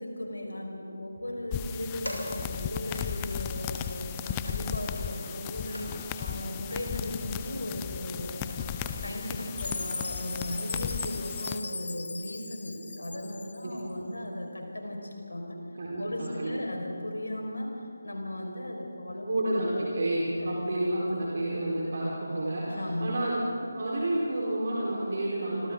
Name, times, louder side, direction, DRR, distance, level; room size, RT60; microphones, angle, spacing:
voice 1, 0.0-8.6 9.0-15.6 16.0-17.7 18.0-19.3 19.7-19.8 20.3-20.5 22.7-23.2, left 1 dB, 70° left, 1 dB, 5.3 m, -37 dB
sound 1, 1.5-11.6, left 8 dB, 15° left, 0.7 m, -36 dB
sound 2, 2.0-2.6 2.9-3.3 3.6-6.2 6.7-7.1 7.3-7.6 7.9-10.5, equal, 90° right, 6.4 m, -45 dB
Chime, 9.6-13.8, left 3 dB, 50° left, 1.1 m, -38 dB
voice 2, 15.7-16.6 19.2-25.7, right 1 dB, 45° right, -5 dB, 4.3 m, -30 dB
28.5 x 25.5 x 3.9 m, 2.8 s
figure-of-eight pair, 155°, 0 cm